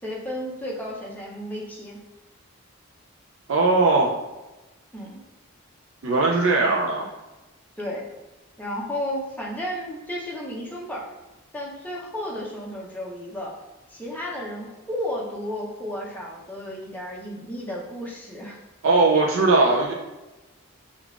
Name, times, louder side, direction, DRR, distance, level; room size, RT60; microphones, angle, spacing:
voice 1, 0.0-2.0 4.9-5.2 7.8-8.1 8.6-11.1 11.5-13.6 13.9-18.6, equal, 10° left, -4 dB, 0.6 m, -33 dB
voice 2, 3.5-4.1 6.0-7.1 18.8-19.9, right 3 dB, 70° right, -1 dB, 0.4 m, -19 dB
5.2 x 2.4 x 2.4 m, 1.1 s
head